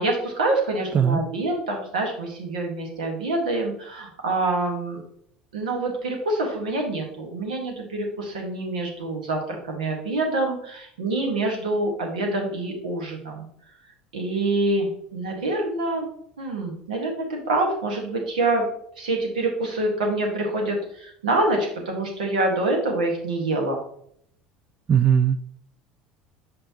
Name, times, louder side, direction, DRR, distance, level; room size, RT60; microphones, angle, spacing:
voice 1, 0.0-5.0 5.5-13.4 14.1-16.1 16.4-18.7 19.0-23.8, right 2 dB, 90° right, 1 dB, 1.4 m, -26 dB
voice 2, 24.9-25.4, right 8 dB, 35° right, 14 dB, 0.4 m, -18 dB
6.4 x 5.7 x 2.8 m, 0.67 s
hypercardioid pair, 80°, 4 cm